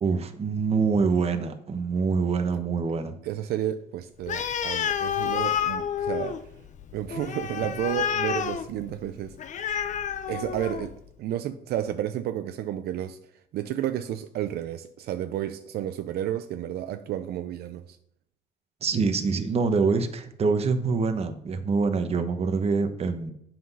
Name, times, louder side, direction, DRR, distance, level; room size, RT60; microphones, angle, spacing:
voice 1, 0.0-3.1 18.8-23.3, right 4 dB, 35° right, 8 dB, 1.1 m, -25 dB
voice 2, 3.2-6.5 6.9-9.4 10.3-10.9 11.2-13.2 13.5-18.0, right 11 dB, 70° right, 9 dB, 0.6 m, -31 dB
Animal, 4.2-11.0, left 8 dB, 45° left, 0.7 m, -30 dB
7.7 x 5.9 x 5.5 m, 0.72 s
cardioid pair, 110°, 17 cm